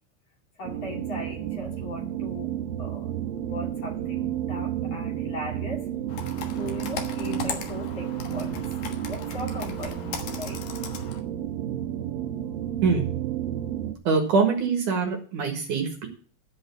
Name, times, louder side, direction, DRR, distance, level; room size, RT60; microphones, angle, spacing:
voice 1, 0.6-2.5 2.8-3.1 3.5-5.9 6.5-8.5 9.1-10.6, left 2 dB, 45° left, -1 dB, 3.2 m, -38 dB
sound 1, 0.6-13.9, right 11 dB, 75° right, 2.4 m, -32 dB
Computer keyboard, 6.1-11.2, left 6 dB, 60° left, 2.4 m, -37 dB
voice 2, 14.0-16.1, right 5 dB, 60° right, 3 dB, 2.8 m, -24 dB
13.0 x 5.4 x 8.4 m, 0.43 s
omnidirectional pair, 4.6 m